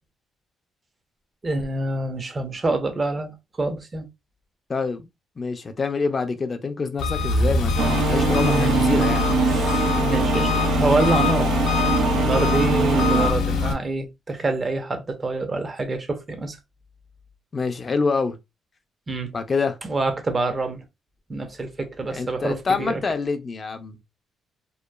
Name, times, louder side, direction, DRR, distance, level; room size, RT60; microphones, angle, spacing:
voice 1, 1.4-4.1 8.4-9.0 9.5-11.6 12.1-16.6 19.1-19.3 19.8-20.8 21.3-23.0, right 2 dB, 30° right, 0.7 m, -26 dB
voice 2, 4.7-5.1 5.4-9.3 17.5-18.4 19.3-19.8 22.1-24.0, left 4 dB, 35° left, 0.4 m, -26 dB
Engine, 7.0-13.7, left 6 dB, 90° left, 0.6 m, -23 dB
sound 1, 7.8-13.3, right 7 dB, 75° right, 0.4 m, -23 dB
2.9 x 2.3 x 2.2 m
cardioid pair, 90°, 0 cm